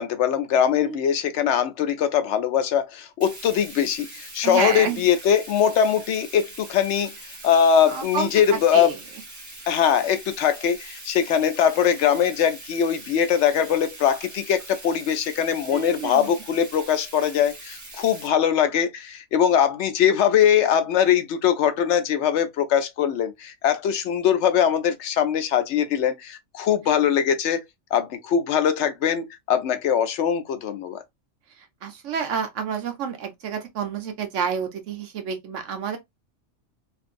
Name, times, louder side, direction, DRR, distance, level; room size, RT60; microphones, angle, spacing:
voice 1, 0.0-7.1 7.4-8.9 9.7-27.6 27.9-31.0, left 8 dB, 70° left, 0.8 m, -21 dB
Bathtub (filling or washing), 3.2-18.3, right 2 dB, 30° right, 0.3 m, -42 dB
voice 2, 4.4-5.0 7.9-9.0 15.7-16.3 31.8-36.0, right 7 dB, 75° right, 1.1 m, -29 dB
3.0 x 2.6 x 2.5 m
omnidirectional pair, 1.3 m